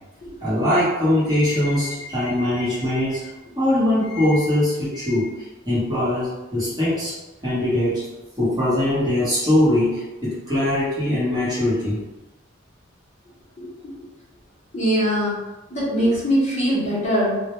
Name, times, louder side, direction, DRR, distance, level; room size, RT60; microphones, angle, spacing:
voice 1, 0.4-3.3 3.6-5.3 5.7-7.1 7.4-8.0 8.4-12.0, left 1 dB, 20° right, -10 dB, 0.9 m, -21 dB
voice 2, 14.7-15.4 15.7-17.4, equal, 35° left, -8 dB, 0.8 m, -21 dB
2.1 x 2.1 x 2.9 m, 1.1 s
head